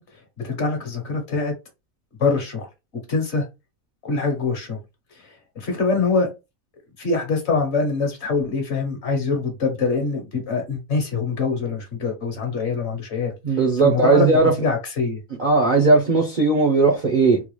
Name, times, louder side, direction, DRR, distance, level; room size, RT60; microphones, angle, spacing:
voice 1, 0.1-1.5 2.2-2.7 3.1-3.5 4.0-4.8 5.1-6.3 7.0-15.2, left 4 dB, 50° left, 1.2 m, -24 dB
voice 2, 13.4-14.5 15.4-17.4, right 3 dB, 45° right, 0.7 m, -17 dB
3.8 x 2.3 x 3.1 m
omnidirectional pair, 1.5 m